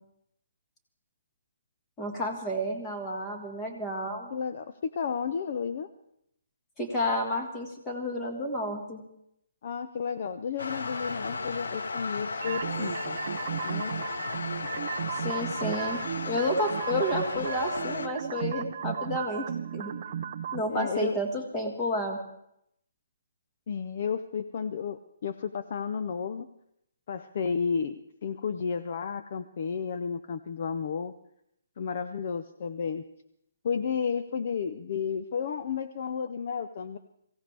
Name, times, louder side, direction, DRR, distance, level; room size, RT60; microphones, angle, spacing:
voice 1, 2.0-4.3 6.8-9.0 15.2-19.4 19.7-19.9 20.5-22.2, left 1 dB, 10° left, 1 dB, 1.7 m, -31 dB
voice 2, 4.3-5.9 9.6-13.2 13.6-13.9 20.7-21.2 23.7-26.5 27.1-31.1 31.8-33.0 33.6-37.0, left 6 dB, 35° left, 10 dB, 0.5 m, -32 dB
sound 1, 10.6-18.1, left 3 dB, 85° left, 0.9 m, -35 dB
sound 2, 12.4-20.6, right 8 dB, 35° right, 0.5 m, -35 dB
23.0 x 16.0 x 3.4 m, 0.77 s
hypercardioid pair, 175°, 0 cm